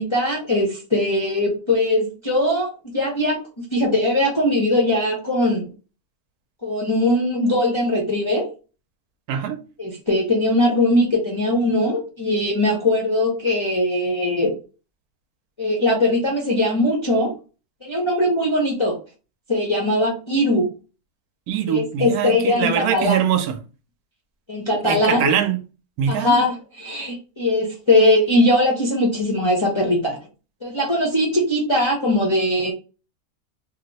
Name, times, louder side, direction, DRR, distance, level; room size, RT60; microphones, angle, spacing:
voice 1, 0.0-5.7 6.6-8.5 9.8-14.5 15.6-17.3 17.8-19.0 19.5-20.7 21.7-23.2 24.5-25.3 26.1-30.2 30.6-32.7, left 1 dB, 35° left, 0.4 m, -20 dB
voice 2, 9.3-9.6 21.5-23.6 24.8-25.6 26.0-26.5, right 9 dB, 80° right, 1.1 m, -22 dB
2.8 x 2.0 x 4.0 m
omnidirectional pair, 1.6 m